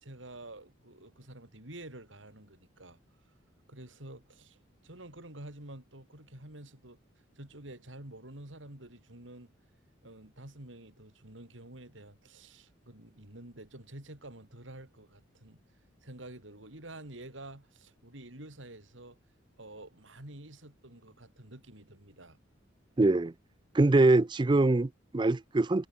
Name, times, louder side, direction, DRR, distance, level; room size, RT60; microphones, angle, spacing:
voice 1, 0.0-3.0 3.7-7.0 7.4-9.5 10.0-15.6 16.0-19.2 19.6-22.4, right 1 dB, 75° right, 4.3 m, -49 dB
voice 2, 23.0-23.3 23.7-25.9, right 2 dB, 25° right, 0.4 m, -24 dB
head